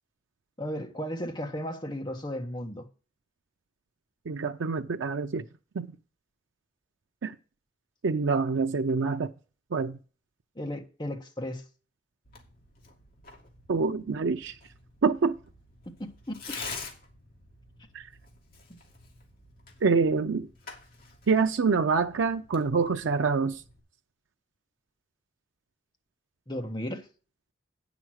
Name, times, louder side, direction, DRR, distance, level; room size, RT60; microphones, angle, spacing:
voice 1, 0.6-2.9 10.6-11.6 16.3-16.6 26.5-27.0, equal, 25° left, 1.3 m, -35 dB
voice 2, 4.3-5.4 5.7-5.9 7.2-7.4 8.0-9.3 9.7-10.0 13.7-14.6 15.0-15.4 17.9-18.1 19.8-20.5 21.3-23.6, right 4 dB, 90° right, 0.5 m, -26 dB
Tearing, 12.2-23.8, left 4 dB, 50° left, 2.5 m, -47 dB
9.0 x 6.1 x 6.2 m
head